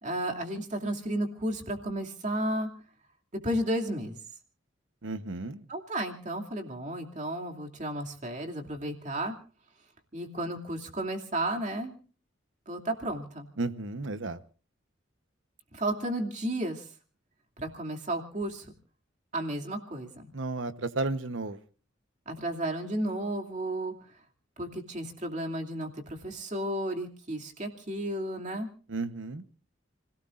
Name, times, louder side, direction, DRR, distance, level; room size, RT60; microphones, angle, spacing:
voice 1, 0.0-2.7 3.3-4.2 5.7-9.3 10.1-12.0 12.7-13.5 15.7-16.9 17.6-18.7 19.3-20.3 22.3-23.9 24.6-28.7, right 1 dB, 40° right, 3 dB, 2.6 m, -33 dB
voice 2, 5.0-5.7 13.6-14.4 20.3-21.6 28.9-29.4, right 3 dB, 75° right, 12 dB, 1.0 m, -33 dB
30.0 x 17.5 x 2.5 m, 0.39 s
head